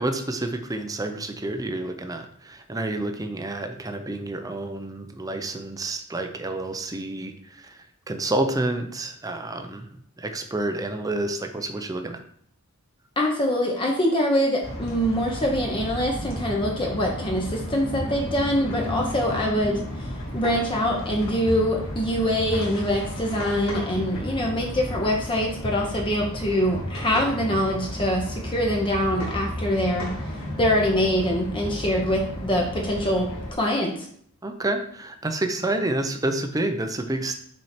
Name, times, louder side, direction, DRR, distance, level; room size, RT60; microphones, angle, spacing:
voice 1, 0.0-9.9 10.2-12.2 34.4-37.3, right 2 dB, 15° right, 6 dB, 0.6 m, -29 dB
voice 2, 13.2-20.1 20.3-30.1 30.6-34.1, equal, 25° left, -1 dB, 0.9 m, -24 dB
sound 1, 14.6-33.5, equal, 70° left, 2.3 m, -33 dB
6.3 x 4.5 x 4.3 m, 0.63 s
head